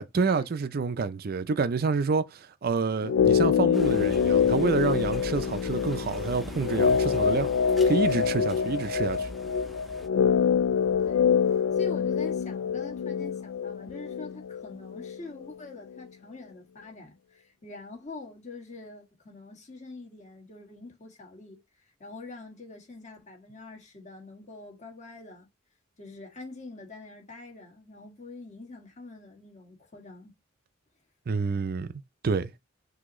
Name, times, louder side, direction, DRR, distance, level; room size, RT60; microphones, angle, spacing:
voice 1, 0.0-7.5 7.8-9.3 31.3-31.9 32.2-32.5, right 4 dB, 50° right, 0.4 m, -28 dB
sound 1, 3.0-15.2 15.4-15.5, left 7 dB, 85° left, 0.3 m, -25 dB
sound 2, 3.7-10.1, equal, ahead, 0.5 m, -42 dB
voice 2, 11.0-21.6 22.0-25.5 26.0-30.3, left 2 dB, 35° left, 1.6 m, -45 dB
6.1 x 2.7 x 3.0 m
head